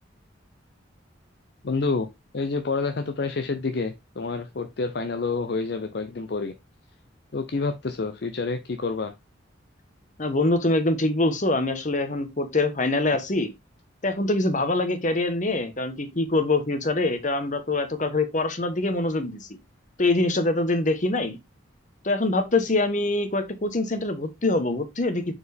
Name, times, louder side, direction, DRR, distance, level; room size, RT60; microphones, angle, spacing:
voice 1, 1.6-2.1 2.3-6.5 7.3-9.1, left 3 dB, 55° left, 0.6 m, -28 dB
voice 2, 10.2-13.5 14.0-19.5 20.0-21.4 22.0-25.3, left 2 dB, 40° left, 1.1 m, -24 dB
6.8 x 4.4 x 3.4 m
head